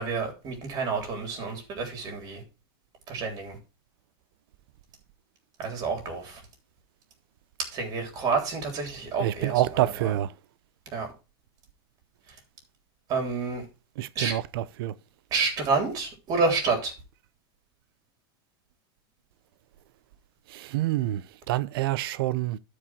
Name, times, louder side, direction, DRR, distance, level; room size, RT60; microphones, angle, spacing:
voice 1, 0.0-2.4 3.1-3.6 5.6-6.4 7.7-10.1 10.9-11.1 12.3-12.4 13.1-13.7 14.2-14.3 15.3-16.9, right 4 dB, 30° right, 3.5 m, -29 dB
voice 2, 9.2-10.3 14.0-14.9 20.5-22.6, right 14 dB, 65° right, 0.7 m, -27 dB
12.5 x 5.0 x 4.4 m
supercardioid pair, 160°, 13 cm